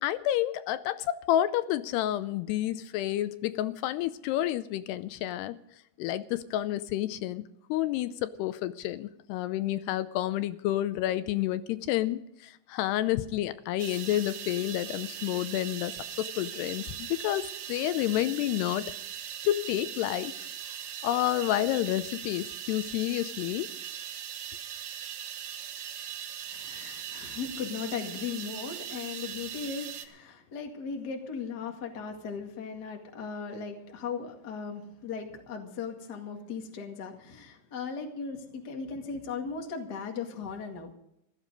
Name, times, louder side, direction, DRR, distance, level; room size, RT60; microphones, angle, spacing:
voice 1, 0.0-5.6 6.0-7.4 7.7-15.9 16.2-18.9 19.5-20.5 21.0-23.7, left 13 dB, 85° left, 13 dB, 2.7 m, -29 dB
sound 1, 13.8-30.0, right 9 dB, 70° right, 1.9 m, -40 dB
voice 2, 26.5-40.9, left 5 dB, 35° left, 3 dB, 1.7 m, -37 dB
16.5 x 13.0 x 5.1 m, 0.77 s
omnidirectional pair, 4.7 m